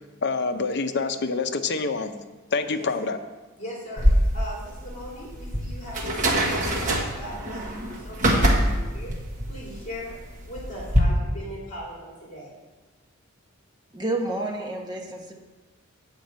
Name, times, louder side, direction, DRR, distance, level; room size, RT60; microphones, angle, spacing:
voice 1, 0.2-2.1 2.5-3.2, left 4 dB, 55° left, 8 dB, 0.7 m, -26 dB
voice 2, 3.6-9.1 9.5-10.1 10.5-12.5, equal, 35° left, -5 dB, 3.2 m, -39 dB
sound 1, 4.0-11.0, equal, 40° right, 1.5 m, -24 dB
voice 3, 13.9-15.3, right 2 dB, 20° right, 1 dB, 1.2 m, -29 dB
9.1 x 5.2 x 7.9 m, 1.2 s
head